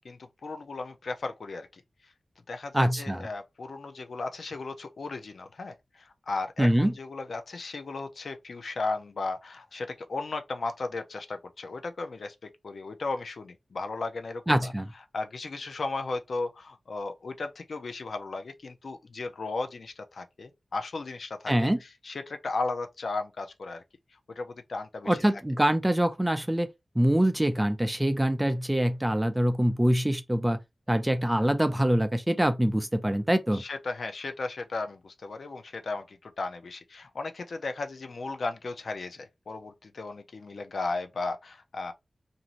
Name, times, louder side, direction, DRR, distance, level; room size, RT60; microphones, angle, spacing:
voice 1, 0.0-1.8 2.5-14.7 15.1-23.8 24.3-25.2 33.5-41.9, left 3 dB, 75° left, 0.5 m, -35 dB
voice 2, 2.7-3.3 6.6-6.9 14.5-14.9 21.5-21.8 25.1-26.7 27.0-30.6 30.9-33.6, right 1 dB, 10° right, 0.4 m, -24 dB
2.6 x 2.5 x 2.9 m
wide cardioid pair, 95°, 0 cm